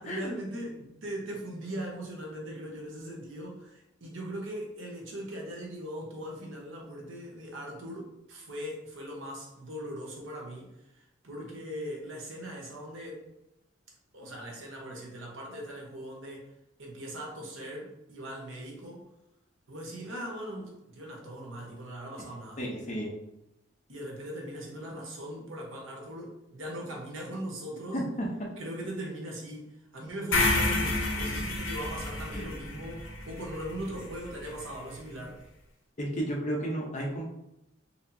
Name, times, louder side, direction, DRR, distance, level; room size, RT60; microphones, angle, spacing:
voice 1, 0.0-10.7 11.2-13.2 14.1-16.5 16.8-19.0 19.7-22.6 23.9-28.0 28.6-35.4, right 1 dB, 75° right, -1 dB, 1.0 m, -40 dB
voice 2, 22.6-23.1 27.9-28.5 32.4-32.5 36.0-37.2, equal, 35° left, -1 dB, 0.7 m, -32 dB
sound 1, 30.3-34.5, left 2 dB, 75° left, 0.7 m, -30 dB
4.2 x 2.7 x 2.7 m, 0.87 s
head